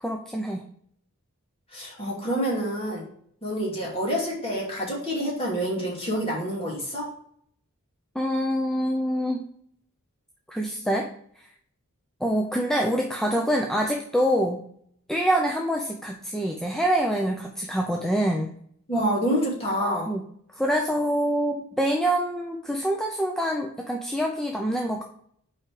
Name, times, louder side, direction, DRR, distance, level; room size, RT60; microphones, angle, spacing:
voice 1, 0.0-0.6 8.1-9.4 10.5-11.1 12.2-14.7 15.1-18.5 20.1-20.2 20.5-25.0, equal, ahead, 1 dB, 0.5 m, -25 dB
voice 2, 1.7-3.0 3.4-7.1 18.9-20.1, equal, 25° left, -4 dB, 2.6 m, -27 dB
5.7 x 4.8 x 4.8 m, 0.65 s
head